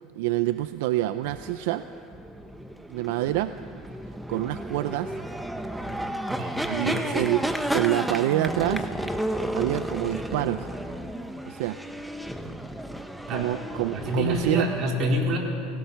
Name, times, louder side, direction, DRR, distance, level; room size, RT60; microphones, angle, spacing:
voice 1, 0.2-1.8 2.9-3.5 4.3-5.1 6.7-7.5 7.7-8.9 9.5-10.7 11.5-11.8 13.3-14.7, right 16 dB, 80° right, 12 dB, 0.5 m, -26 dB
sound 1, 1.2-14.8, right 1 dB, 5° right, 1.0 m, -32 dB
voice 2, 6.3-7.1 12.4-12.5 13.3-13.5 13.9-15.4, equal, 45° right, 0 dB, 4.5 m, -28 dB
28.5 x 17.5 x 5.8 m, 2.6 s
supercardioid pair, 125°, 0 cm